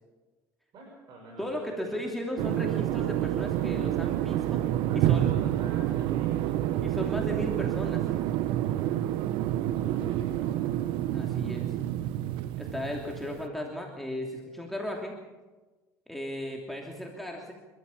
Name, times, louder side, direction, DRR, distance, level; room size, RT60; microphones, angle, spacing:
voice 1, 0.7-2.1 4.2-4.5 4.9-6.8 8.7-9.2 9.7-11.0, right 3 dB, 55° right, -2 dB, 6.8 m, -48 dB
voice 2, 1.4-4.6 4.9-5.3 6.8-8.1 11.1-11.7 12.6-15.2 16.1-17.5, left 1 dB, ahead, -1 dB, 3.0 m, -35 dB
sound 1, 2.4-13.5, right 13 dB, 75° right, 0.9 m, -28 dB
27.5 x 13.5 x 7.2 m, 1.2 s
supercardioid pair, 95°, 9 cm